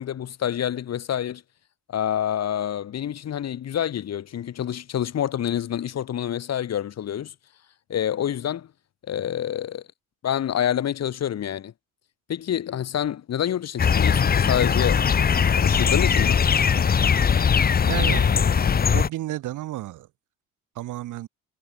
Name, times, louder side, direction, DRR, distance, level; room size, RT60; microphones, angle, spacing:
voice 1, 0.0-1.4 1.9-7.3 7.9-8.7 9.1-9.8 10.2-11.7 12.3-15.1 15.5-16.4, left 10 dB, 55° left, 7.2 m, -27 dB
sound 1, 13.8-19.1, left 7 dB, 30° left, 1.0 m, -20 dB
voice 2, 17.8-18.4 18.9-20.1 20.8-21.3, right 15 dB, 75° right, 5.5 m, -31 dB
cardioid pair, 100°, 31 cm